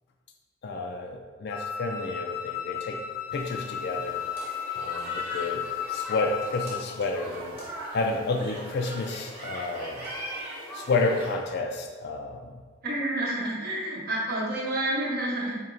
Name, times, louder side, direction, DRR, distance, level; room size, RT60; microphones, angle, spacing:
voice 1, 0.6-3.0 3.3-4.2 4.8-7.6 7.9-10.1 10.7-12.6, left 3 dB, 50° left, 3 dB, 0.3 m, -30 dB
Wind instrument woodwind instrument, 1.5-6.8, left 9 dB, 90° left, 0.7 m, -34 dB
sound 1, 3.3-11.3, right 1 dB, 10° right, 1.0 m, -40 dB
voice 2, 12.8-15.6, right 1 dB, 45° right, -3 dB, 0.8 m, -29 dB
4.3 x 2.9 x 2.5 m, 1.5 s
head